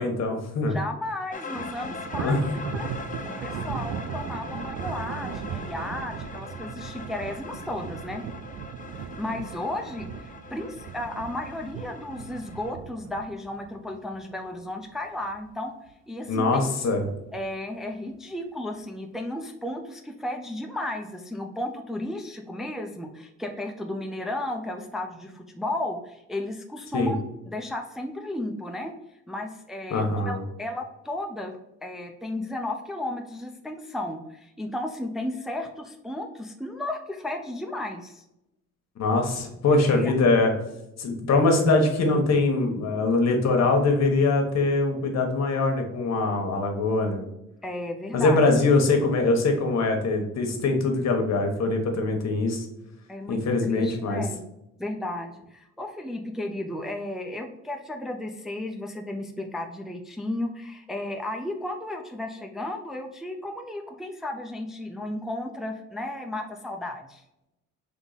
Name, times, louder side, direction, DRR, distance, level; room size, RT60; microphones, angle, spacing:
voice 1, 0.0-0.8 2.2-2.4 16.3-17.1 26.9-27.1 29.9-30.4 39.0-40.5 41.0-47.2 48.1-52.7 53.3-54.2, left 3 dB, 60° left, 4 dB, 1.2 m, -23 dB
voice 2, 0.7-2.5 2.7-2.9 3.2-8.2 9.2-15.7 16.1-16.6 17.3-27.2 27.5-28.9 29.3-38.2 39.9-40.1 47.6-48.4 53.1-54.4 54.8-67.2, left 1 dB, ahead, 3 dB, 0.5 m, -34 dB
sound 1, 1.3-12.7, left 3 dB, 25° left, 0.9 m, -41 dB
Thunder, 1.5-14.8 15.2-15.5 15.9-16.0 16.9-17.4, right 8 dB, 65° right, 0.5 m, -38 dB
3.7 x 3.5 x 4.0 m, 0.88 s
cardioid pair, 90°, 30 cm